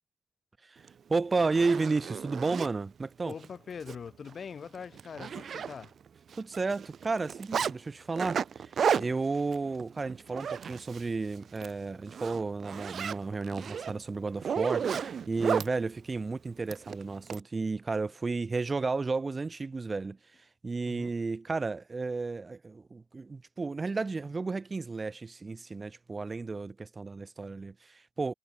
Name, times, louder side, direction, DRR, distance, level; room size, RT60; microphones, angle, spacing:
Zipper (clothing), 0.9-1.0 1.4-2.7 3.3-3.5 3.8-3.9 4.3-4.4 4.7-6.1 6.3-7.7 8.2-11.1 11.4-11.7 12.1-15.7 16.7-17.4, right 7 dB, 50° right, 3.0 m, -33 dB
voice 1, 1.1-3.3 6.4-8.7 9.0-20.2 20.6-28.3, right 3 dB, 25° right, 6.6 m, -32 dB
voice 2, 3.2-5.9 8.9-9.2 20.8-21.1, left 6 dB, 45° left, 6.5 m, -43 dB
cardioid pair, 90°, 0 cm